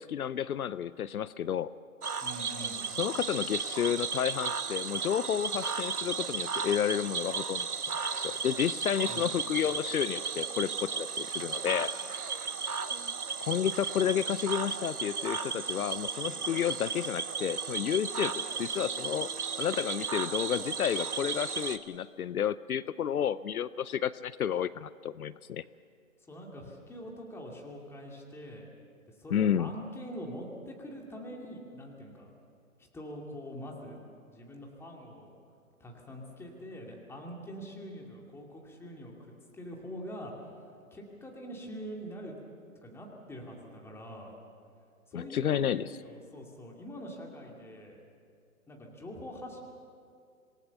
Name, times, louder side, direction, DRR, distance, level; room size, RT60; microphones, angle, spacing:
voice 1, 0.0-1.7 2.9-7.7 8.2-11.9 13.4-18.3 18.6-19.3 19.6-25.6 29.3-29.7 45.1-45.9, left 9 dB, 80° left, 18 dB, 0.7 m, -31 dB
Cricket / Frog, 2.0-21.8, right 5 dB, 85° right, 1.4 m, -35 dB
voice 2, 2.2-2.9 9.0-9.7 26.3-28.7 29.2-32.3 32.8-34.0 34.3-35.3 35.8-39.1 39.5-40.3 40.9-42.4 42.8-44.3 45.1-48.0 48.7-49.6, equal, 5° left, 0 dB, 2.4 m, -44 dB
26.5 x 18.5 x 6.9 m, 2.4 s
hypercardioid pair, 140°, 43 cm